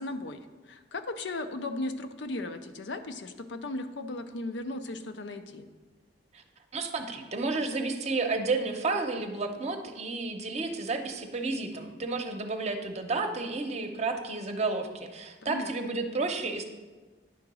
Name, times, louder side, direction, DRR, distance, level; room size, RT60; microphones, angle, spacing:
voice 1, 0.0-5.7 15.4-15.9, left 2 dB, 80° left, 8 dB, 0.6 m, -36 dB
voice 2, 6.7-16.6, right 3 dB, 40° right, 5 dB, 0.7 m, -31 dB
9.8 x 3.8 x 6.1 m, 1.3 s
head